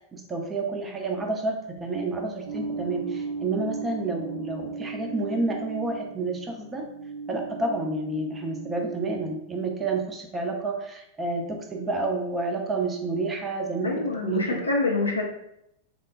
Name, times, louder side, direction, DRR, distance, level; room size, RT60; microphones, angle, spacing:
voice 1, 0.0-6.9 7.3-14.6, right 3 dB, 20° right, 2 dB, 0.6 m, -30 dB
sound 1, 2.5-9.0, right 5 dB, 65° right, 0.6 m, -36 dB
voice 2, 13.8-15.2, left 3 dB, 80° left, -1 dB, 0.5 m, -26 dB
3.5 x 2.1 x 2.4 m, 0.79 s
figure-of-eight pair, 90°, 0 cm